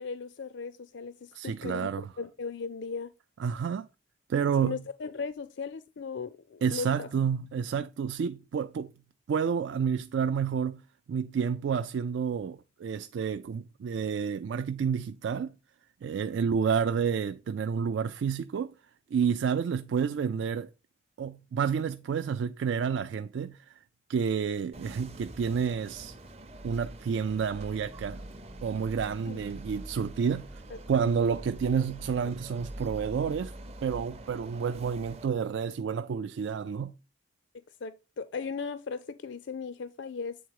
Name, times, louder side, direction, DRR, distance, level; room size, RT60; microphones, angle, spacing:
voice 1, 0.0-1.9 2.2-3.1 4.6-7.1 29.3-29.4 30.7-31.1 37.8-40.4, left 5 dB, 65° left, 0.4 m, -37 dB
voice 2, 1.3-2.1 3.4-3.9 4.3-4.8 6.6-8.9 9.3-10.8 11.1-15.5 16.0-18.7 19.1-20.7 21.2-23.7 24.1-26.1 26.6-28.2 28.6-30.5 30.9-33.6 33.8-36.9, right 6 dB, 70° right, 0.3 m, -29 dB
sound 1, 24.7-35.3, right 1 dB, 30° right, 0.6 m, -44 dB
8.0 x 3.7 x 4.7 m
head